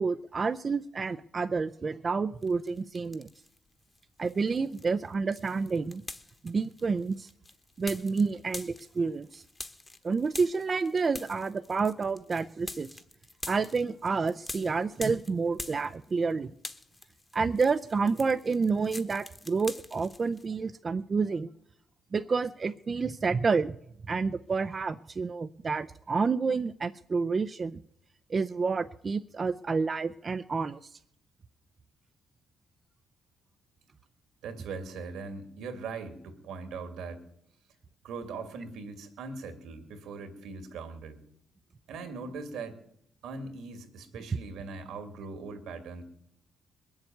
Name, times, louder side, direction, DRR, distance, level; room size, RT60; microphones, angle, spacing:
voice 1, 0.0-3.3 4.2-6.0 6.4-7.3 7.8-9.4 10.0-12.9 13.5-16.5 17.3-21.5 22.1-23.8 24.1-27.8 28.3-30.9, right 4 dB, 35° right, 9 dB, 0.5 m, -29 dB
sound 1, 2.4-3.6 3.9-16.3 16.6-20.5, left 2 dB, 20° left, 1.3 m, -45 dB
voice 2, 34.4-37.2 38.0-41.2 41.9-42.8 43.2-46.0, right 4 dB, 85° right, 8 dB, 2.5 m, -40 dB
21.0 x 7.2 x 9.3 m, 0.75 s
cardioid pair, 90°, 0 cm